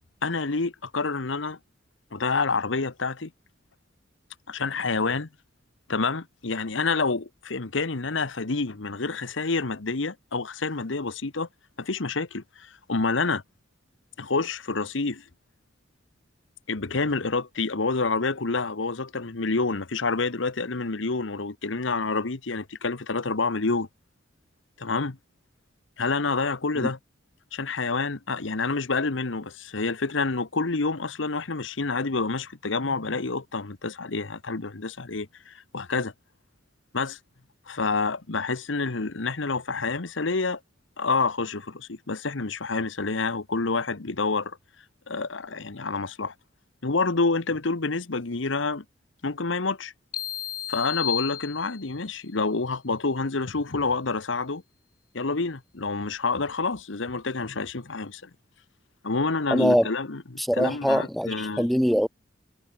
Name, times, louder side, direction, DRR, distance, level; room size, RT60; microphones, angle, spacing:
voice 1, 0.2-1.6 2.1-3.3 4.5-5.3 5.9-11.5 11.8-13.4 14.2-15.2 16.7-23.9 24.8-25.2 26.0-27.0 27.5-36.1 36.9-37.2 37.7-40.6 41.0-44.6 45.1-46.3 46.8-48.8 49.2-49.9 50.7-54.6 55.1-58.3 59.0-61.7, left 3 dB, 75° left, 1.2 m, -28 dB
sound 1, 50.1-52.1, left 11 dB, 45° left, 1.6 m, -33 dB
voice 2, 59.5-59.9 60.5-62.1, equal, ahead, 0.6 m, -22 dB
head